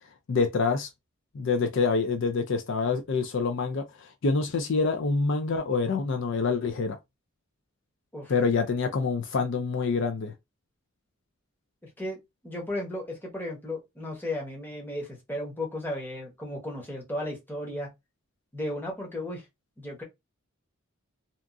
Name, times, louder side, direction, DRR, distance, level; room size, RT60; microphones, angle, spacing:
voice 1, 0.3-0.9 1.3-7.0 8.3-10.3, left 4 dB, 60° left, 0.4 m, -26 dB
voice 2, 12.4-17.9 18.5-19.5 19.8-20.0, left 1 dB, 10° left, 0.9 m, -34 dB
2.8 x 2.3 x 2.4 m
head